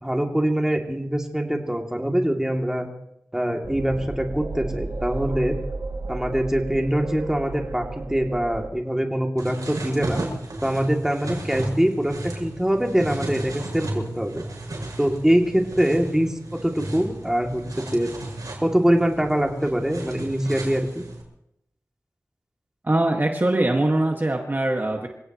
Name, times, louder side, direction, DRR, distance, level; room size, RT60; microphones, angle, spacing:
voice 1, 0.0-2.9 3.3-5.6 6.1-10.2 10.6-14.4 15.0-18.1 18.6-21.0, equal, 10° right, 1 dB, 2.7 m, -23 dB
sound 1, 3.6-8.7, right 3 dB, 60° right, 2.4 m, -33 dB
sound 2, 9.4-21.2, right 2 dB, 80° right, 6.2 m, -34 dB
voice 2, 22.8-25.1, right 1 dB, 35° right, 1 dB, 1.9 m, -22 dB
27.0 x 17.0 x 3.1 m, 0.81 s
wide cardioid pair, 70°, 6 cm